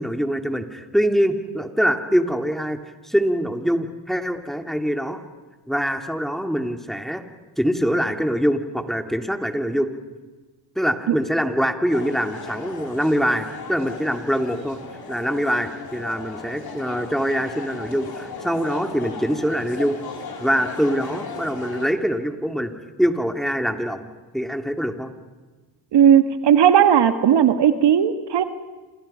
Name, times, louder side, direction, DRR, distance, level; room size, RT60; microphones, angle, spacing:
voice 1, 0.0-2.8 3.0-5.2 5.7-7.2 7.6-9.9 10.8-14.8 15.1-20.0 20.4-22.7 23.0-24.1 24.3-25.1, equal, ahead, 5 dB, 2.6 m, -24 dB
sound 1, 11.9-21.9, left 5 dB, 50° left, 4.9 m, -36 dB
voice 2, 25.9-28.4, right 9 dB, 60° right, 9 dB, 1.7 m, -16 dB
29.0 x 27.5 x 5.7 m, 1.3 s
supercardioid pair, 60°, 47 cm